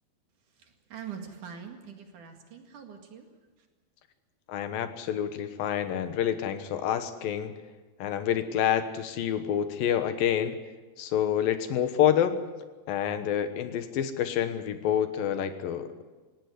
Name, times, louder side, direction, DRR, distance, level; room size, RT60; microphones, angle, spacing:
voice 1, 0.6-3.3, right 7 dB, 55° right, 4 dB, 3.3 m, -43 dB
voice 2, 4.5-7.5 8.0-10.6 11.0-12.4 12.9-16.0, left 9 dB, 70° left, 10 dB, 2.7 m, -28 dB
18.5 x 17.5 x 9.6 m, 1.3 s
omnidirectional pair, 4.7 m